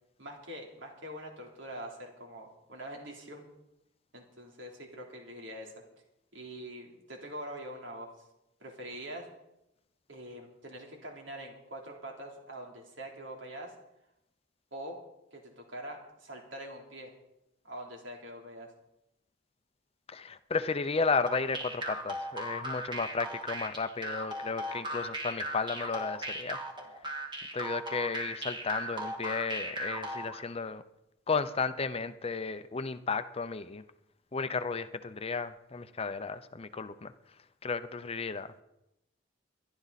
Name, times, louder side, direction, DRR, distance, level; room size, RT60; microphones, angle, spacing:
voice 1, 0.2-3.5 4.1-5.7 6.3-8.2 8.6-9.3 10.1-13.7 14.7-15.0 15.3-17.1 17.6-18.7, right 1 dB, 80° right, 0 dB, 3.5 m, -44 dB
voice 2, 20.1-26.6 27.5-30.8 31.3-33.8 34.3-37.1 37.6-38.5, left 4 dB, 30° left, 11 dB, 0.6 m, -33 dB
sound 1, 21.3-30.4, right 1 dB, 25° right, 2.0 m, -37 dB
22.0 x 11.5 x 4.1 m, 0.88 s
head